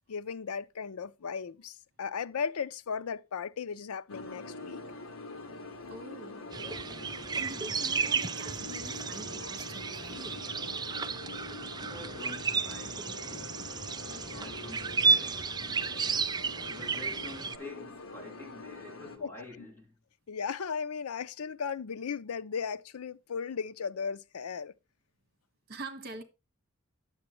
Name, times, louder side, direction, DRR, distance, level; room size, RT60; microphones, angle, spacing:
voice 1, 0.1-4.8 19.2-19.3 20.3-24.7, left 6 dB, 85° left, 0.5 m, -36 dB
sound 1, 4.1-19.2, left 2 dB, 70° left, 1.4 m, -44 dB
voice 2, 5.9-6.4 7.4-10.4 25.7-26.2, right 2 dB, 45° right, 1.5 m, -45 dB
sound 2, 6.5-17.6, right 5 dB, 20° right, 0.4 m, -32 dB
voice 3, 11.9-13.5 14.1-15.7 16.6-19.9, left 2 dB, 10° left, 3.1 m, -48 dB
9.7 x 7.3 x 3.0 m
head